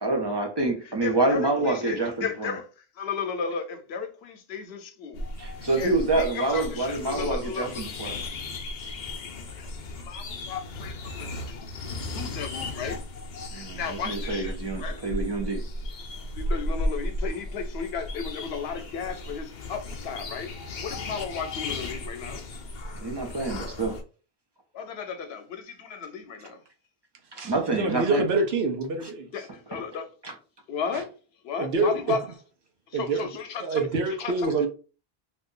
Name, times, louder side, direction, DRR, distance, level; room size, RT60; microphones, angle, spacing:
voice 1, 0.0-2.5 5.4-8.2 13.5-15.6 22.9-24.0 27.3-28.2 29.7-29.8 30.2-30.3, right 2 dB, 30° right, 0.5 m, -27 dB
voice 2, 1.0-5.3 5.6-7.9 9.6-11.7 12.1-13.0 13.5-15.0 16.3-22.4 24.7-26.6 29.3-30.1 30.7-31.1 31.4-32.3 32.9-34.7, left 6 dB, 80° left, 0.9 m, -35 dB
sound 1, 5.1-24.0, left 1 dB, 55° left, 0.6 m, -35 dB
voice 3, 27.4-29.3 31.6-31.9 32.9-33.3 33.6-34.7, right 3 dB, 80° right, 1.0 m, -26 dB
2.6 x 2.4 x 3.6 m
omnidirectional pair, 1.0 m